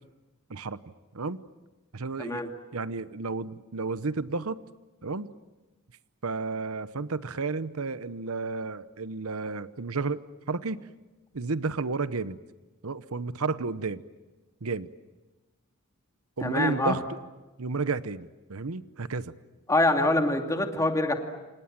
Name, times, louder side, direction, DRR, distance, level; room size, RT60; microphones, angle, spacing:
voice 1, 1.9-2.4 2.7-4.6 5.0-5.3 6.2-10.2 10.5-10.8 11.3-12.4 12.8-14.0 14.6-14.9 16.4-17.0 17.6-19.3, right 4 dB, 80° right, 14 dB, 0.9 m, -32 dB
voice 2, 16.4-17.0 19.7-21.1, left 2 dB, 15° left, 4 dB, 2.5 m, -25 dB
28.5 x 28.0 x 7.5 m, 1.2 s
head